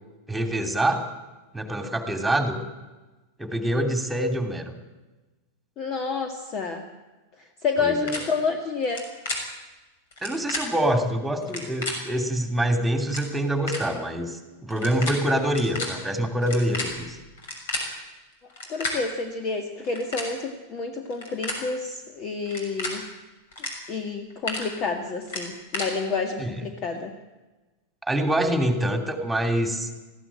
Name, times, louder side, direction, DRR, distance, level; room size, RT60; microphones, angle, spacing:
voice 1, 0.3-1.1 1.5-2.6 3.4-4.7 7.8-8.2 10.2-17.2 26.4-26.5 28.1-29.9, right 1 dB, 5° right, 6 dB, 2.9 m, -25 dB
voice 2, 5.8-6.8 7.4-9.1 18.7-23.0 23.9-27.1, left 4 dB, 35° left, 5 dB, 1.9 m, -29 dB
sound 1, 8.1-8.2 8.8-9.0 9.2-9.4 10.1-10.6 11.4-11.9 12.7-12.8 13.0-13.2 13.7-13.8 14.7-15.1 15.4-15.9 16.4-17.8 18.5-18.9 19.8-20.3 21.1-21.6 22.4-22.9 23.5-23.7 24.1-24.6 25.3-25.9, left 2 dB, 60° left, 6.4 m, -31 dB
20.5 x 15.5 x 8.8 m, 1.2 s
figure-of-eight pair, 90°, 0 cm